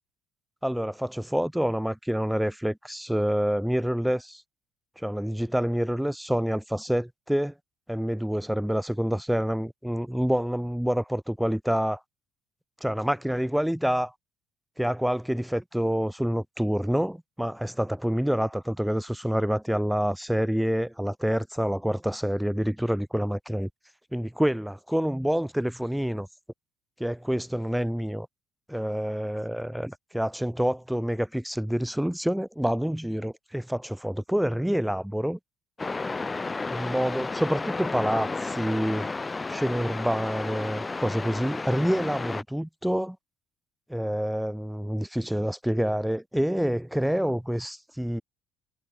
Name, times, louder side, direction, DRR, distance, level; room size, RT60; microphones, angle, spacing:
voice 1, 0.6-4.4 5.0-7.5 7.9-12.0 12.8-14.1 14.8-23.7 24.1-26.3 27.0-28.3 28.7-35.4 36.7-39.1 39.5-43.2 43.9-48.2, equal, ahead, 1.3 m, -27 dB
sound 1, 35.8-42.4, left 3 dB, 20° left, 1.0 m, -32 dB
cardioid pair, 115°, 0 cm